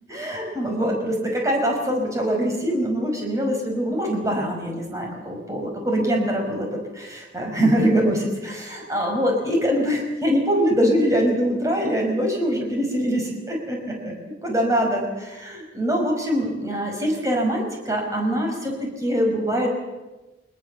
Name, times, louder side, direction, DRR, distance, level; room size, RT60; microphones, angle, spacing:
voice 1, 0.1-14.2 14.4-19.7, equal, 20° right, 1 dB, 5.6 m, -23 dB
24.5 x 21.5 x 7.2 m, 1.1 s
head